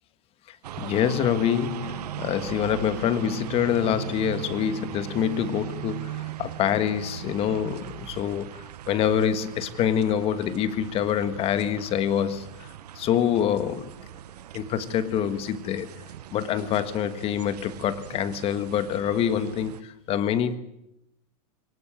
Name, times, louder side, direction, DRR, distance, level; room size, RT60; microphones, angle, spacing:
voice 1, 0.5-13.9 14.5-15.9 16.3-20.6, left 9 dB, 30° left, 1.5 m, -26 dB
sound 1, 0.6-19.8, right 11 dB, 90° right, 1.0 m, -39 dB
22.5 x 19.0 x 8.9 m
supercardioid pair, 150°, 20 cm